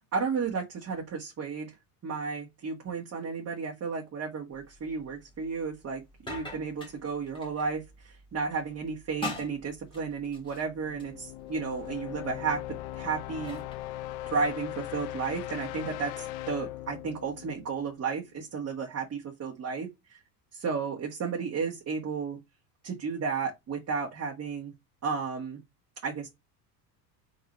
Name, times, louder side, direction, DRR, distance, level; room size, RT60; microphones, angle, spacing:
voice 1, 0.1-1.7 2.0-13.6 14.3-20.2 20.5-22.4 22.8-24.7 25.0-25.6 26.0-26.3, right 5 dB, 30° right, 1.6 m, -33 dB
sound 1, 4.5-14.6, left 2 dB, 10° left, 1.9 m, -46 dB
sound 2, 10.7-18.5, left 15 dB, 60° left, 0.6 m, -40 dB
4.2 x 3.8 x 3.1 m
hypercardioid pair, 85°, 50 cm